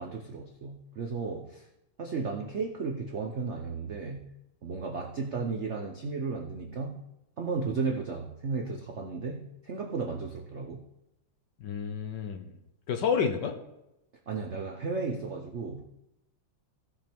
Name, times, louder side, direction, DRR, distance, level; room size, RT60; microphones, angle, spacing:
voice 1, 0.0-1.7 2.0-4.3 4.6-7.0 7.4-10.8 14.3-15.9, right 4 dB, 65° right, 2 dB, 0.6 m, -34 dB
voice 2, 11.6-12.5 12.9-13.6, left 6 dB, 65° left, 6 dB, 1.3 m, -29 dB
16.5 x 6.0 x 3.5 m, 0.89 s
omnidirectional pair, 2.4 m